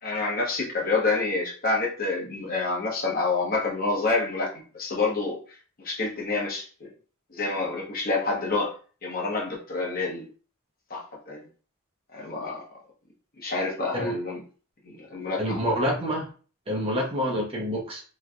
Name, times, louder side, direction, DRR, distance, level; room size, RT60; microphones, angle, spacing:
voice 1, 0.0-4.5 4.7-5.4 5.8-6.9 7.3-8.7 9.0-10.2 10.9-11.4 12.1-12.7 13.4-14.4 14.8-15.8 16.8-17.0, left 3 dB, 45° left, -2 dB, 1.0 m, -28 dB
voice 2, 15.4-16.3 16.7-18.0, equal, 25° right, -2 dB, 0.8 m, -27 dB
3.2 x 3.0 x 2.4 m, 0.39 s
head